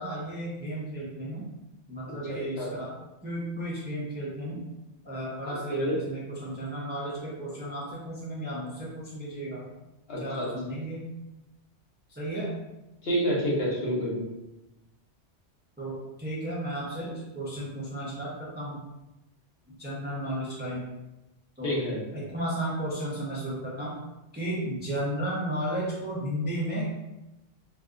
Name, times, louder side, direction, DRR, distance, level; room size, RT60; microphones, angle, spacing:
voice 1, 0.0-1.5 1.9-2.9 3.2-4.6 5.0-9.7 10.2-11.1 12.1-12.5 15.8-18.8 19.8-20.9 21.6-21.7 22.1-23.9 24.3-27.0, right 1 dB, 15° right, -7 dB, 0.5 m, -33 dB
voice 2, 2.3-2.7 5.7-6.0 10.1-10.5 13.0-14.2 21.6-22.0, equal, 65° left, -5 dB, 1.0 m, -28 dB
2.4 x 2.3 x 3.6 m, 0.98 s
omnidirectional pair, 1.2 m